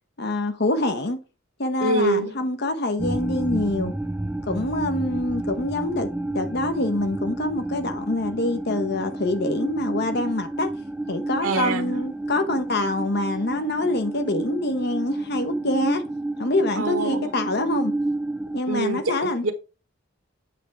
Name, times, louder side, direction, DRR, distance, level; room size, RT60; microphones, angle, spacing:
voice 1, 0.2-1.2 1.6-3.9 4.5-10.7 11.1-16.0 16.4-18.0 18.5-19.4, left 2 dB, 55° left, 0.8 m, -25 dB
voice 2, 1.8-2.3 11.4-12.0 16.8-17.3 18.7-19.5, right 3 dB, 85° right, 1.1 m, -25 dB
sound 1, 3.0-18.6, right 2 dB, 5° right, 0.3 m, -30 dB
8.5 x 3.4 x 4.7 m
head